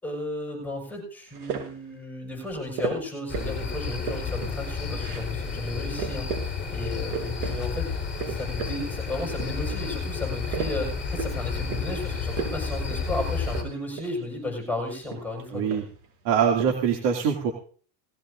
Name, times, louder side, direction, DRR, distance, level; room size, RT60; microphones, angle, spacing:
voice 1, 0.0-7.9 8.3-15.8, left 2 dB, 5° left, 0 dB, 6.1 m, -34 dB
sound 1, 1.3-1.9 2.8-3.6 3.9-4.6 5.0-5.3 5.6-5.7 6.0-6.5 6.8-7.5 7.9-8.8 9.1-9.8 10.2-11.4 11.7-12.0 12.3-12.6 12.9-13.1 13.4-14.2 14.9-16.0 16.3-16.7, right 7 dB, 85° right, 6.6 m, -35 dB
sound 2, 3.3-13.6, left 5 dB, 20° left, 4.4 m, -31 dB
voice 2, 15.5-15.8 16.2-17.5, right 7 dB, 60° right, 2 dB, 2.7 m, -23 dB
19.5 x 16.0 x 2.6 m, 0.42 s
supercardioid pair, 145°, 50 cm